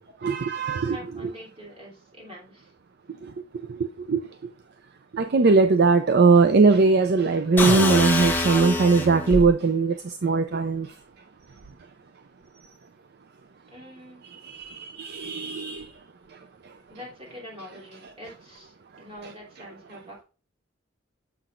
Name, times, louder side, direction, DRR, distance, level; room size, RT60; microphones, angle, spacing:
voice 1, 0.2-1.0 1.2-1.3 3.2-3.3 3.7-4.2 5.1-10.9 14.3-15.9, right 4 dB, 55° right, 0.5 m, -20 dB
voice 2, 0.8-2.7 13.7-14.2 16.9-20.2, left 1 dB, 30° right, 3.1 m, -44 dB
sound 1, 7.6-9.5, left 2 dB, 10° left, 1.0 m, -24 dB
7.1 x 5.9 x 2.5 m
head